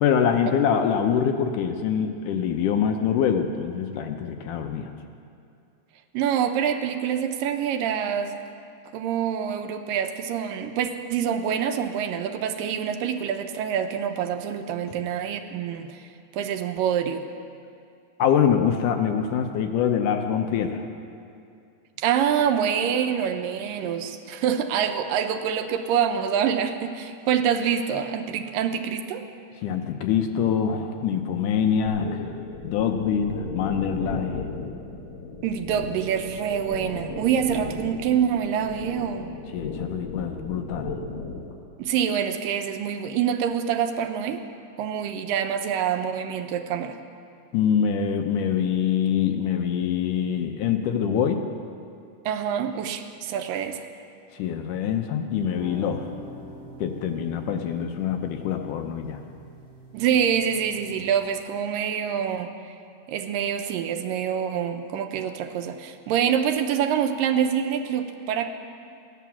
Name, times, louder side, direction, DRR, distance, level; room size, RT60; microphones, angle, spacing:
voice 1, 0.0-4.9 18.2-20.9 29.6-32.3 32.6-34.4 39.5-40.9 47.5-51.5 54.3-56.0 56.8-59.2, left 8 dB, 75° left, 5 dB, 2.2 m, -24 dB
voice 2, 6.1-8.4 8.9-16.0 16.3-17.3 22.0-29.2 35.4-39.3 41.8-44.4 44.8-47.0 52.3-53.9 59.9-62.5 63.1-68.5, right 8 dB, 85° right, 7 dB, 2.5 m, -26 dB
sound 1, 31.9-41.5, left 3 dB, 40° left, 2.2 m, -36 dB
sound 2, 55.3-61.3, equal, 25° left, 4.2 m, -45 dB
16.0 x 11.0 x 7.1 m, 2.5 s
omnidirectional pair, 3.9 m